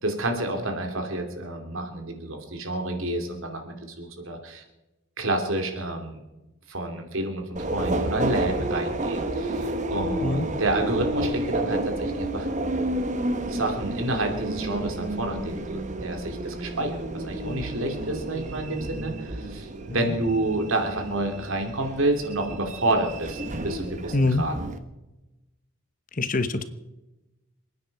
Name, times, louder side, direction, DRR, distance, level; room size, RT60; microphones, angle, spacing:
voice 1, 0.0-4.6 5.2-6.2 6.7-12.5 13.5-24.5, right 2 dB, 70° right, 4 dB, 2.8 m, -29 dB
Subway metro underground, 7.6-24.8, right 1 dB, 35° right, 1.1 m, -31 dB
voice 2, 24.1-24.4 26.1-26.6, left 2 dB, 40° left, 10 dB, 1.0 m, -24 dB
28.5 x 9.6 x 4.7 m, 1.0 s
head